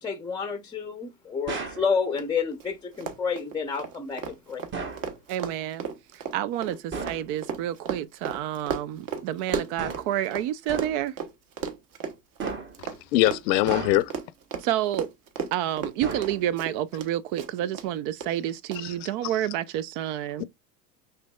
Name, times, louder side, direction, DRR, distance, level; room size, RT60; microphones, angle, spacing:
voice 1, 0.0-4.6, left 5 dB, 10° left, 0.6 m, -30 dB
sound 1, 1.5-1.9 4.7-5.1 6.9-7.3 9.8-10.2 10.7-11.1 12.4-12.9 13.7-14.3 16.0-16.7, right 4 dB, 25° right, 1.0 m, -35 dB
Run, 2.2-2.3 2.5-2.7 2.9-10.5 10.7-17.1 17.4-17.9 18.2-18.3 18.7-18.8, right 6 dB, 40° right, 1.2 m, -34 dB
voice 2, 5.3-5.9 6.3-11.1 14.6-15.1 15.5-20.4, right 12 dB, 60° right, 0.7 m, -29 dB
voice 3, 13.1-14.1 18.8-19.1 20.4-20.5, left 16 dB, 85° left, 0.7 m, -23 dB
5.8 x 3.3 x 2.3 m
supercardioid pair, 115°, 50 cm